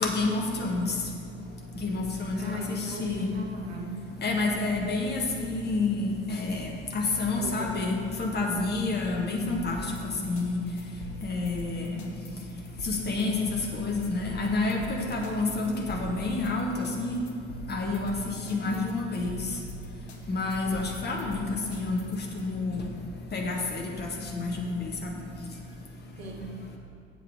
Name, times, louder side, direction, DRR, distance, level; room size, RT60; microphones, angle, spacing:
voice 1, 0.0-0.9 1.8-3.3 4.2-6.7 6.9-9.8 10.2-10.6 11.2-11.8 12.8-13.4 13.7-17.2 17.7-18.1 18.5-19.4 20.3-21.4 21.7-22.0 22.3-22.8 23.3-25.1, left 3 dB, 30° left, 0 dB, 1.5 m, -29 dB
voice 2, 2.3-4.1 7.4-7.8 8.4-8.8 26.2-26.7, right 1 dB, 70° right, 1 dB, 1.2 m, -39 dB
sound 1, 9.5-22.4, equal, 75° left, 0.9 m, -44 dB
7.5 x 5.3 x 7.4 m, 2.5 s
figure-of-eight pair, 60°, 33 cm